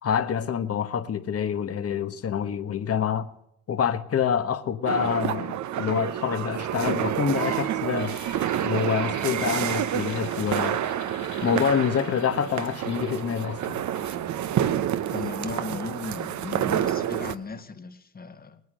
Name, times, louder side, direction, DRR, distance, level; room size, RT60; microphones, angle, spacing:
voice 1, 0.0-3.3 3.7-8.1 8.6-10.8 11.4-13.8, left 8 dB, 50° left, 1.2 m, -26 dB
sound 1, 4.9-17.4, right 10 dB, 70° right, 0.9 m, -28 dB
sound 2, 7.9-14.2, left 7 dB, 70° left, 3.3 m, -47 dB
voice 2, 15.1-18.6, left 4 dB, 30° left, 1.4 m, -36 dB
20.0 x 9.6 x 6.8 m
cardioid pair, 90°, 30 cm